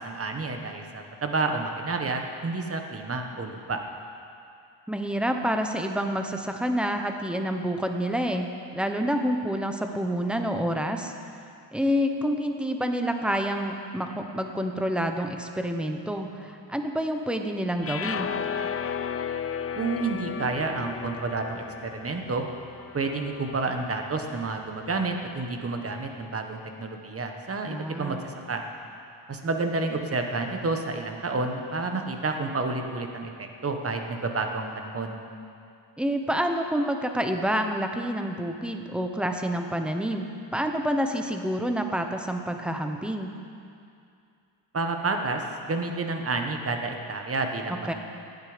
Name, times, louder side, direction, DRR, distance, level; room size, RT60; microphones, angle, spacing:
voice 1, 0.0-3.8 19.7-22.5 22.9-28.6 29.3-35.2 44.7-47.9, right 3 dB, 30° right, 4 dB, 1.3 m, -30 dB
voice 2, 4.9-11.1 11.7-18.3 27.7-28.2 36.0-43.3 47.8-47.9, equal, ahead, 4 dB, 0.9 m, -28 dB
sound 1, 17.8-24.1, left 7 dB, 30° left, 0.5 m, -34 dB
18.0 x 10.5 x 5.1 m, 2.5 s
wide cardioid pair, 145°, 45 cm